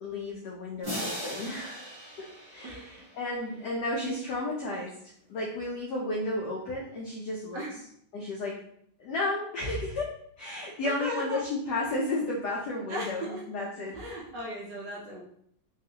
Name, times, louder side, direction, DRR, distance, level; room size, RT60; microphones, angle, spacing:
voice 1, 0.0-1.9 2.2-7.6 8.1-8.6 9.0-14.0, left 2 dB, 85° left, -3 dB, 0.9 m, -33 dB
sound 1, 0.8-3.6, equal, 25° right, 0.6 m, -39 dB
voice 2, 2.6-3.1 7.5-7.8 10.8-11.4 12.9-13.4 13.9-15.2, equal, 70° right, -3 dB, 1.1 m, -37 dB
3.5 x 2.4 x 2.7 m, 0.68 s
omnidirectional pair, 2.4 m